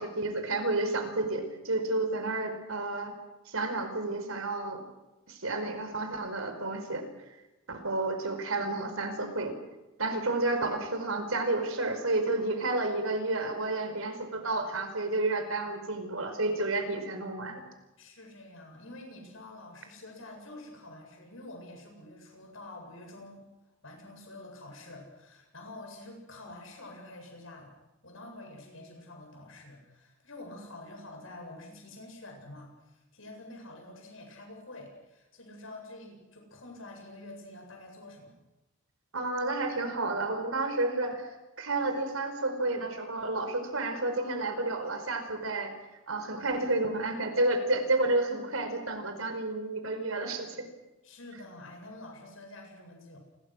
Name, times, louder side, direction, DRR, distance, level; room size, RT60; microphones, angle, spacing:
voice 1, 0.0-3.1 3.5-4.8 5.3-7.1 7.7-9.5 10.0-17.6 39.1-41.3 41.6-45.7 46.1-50.6, right 2 dB, 85° right, 7 dB, 4.8 m, -31 dB
voice 2, 18.0-23.5 23.8-27.7 28.0-38.4 51.0-53.2, left 2 dB, 75° left, 3 dB, 7.9 m, -47 dB
28.5 x 22.0 x 6.4 m, 1.0 s
head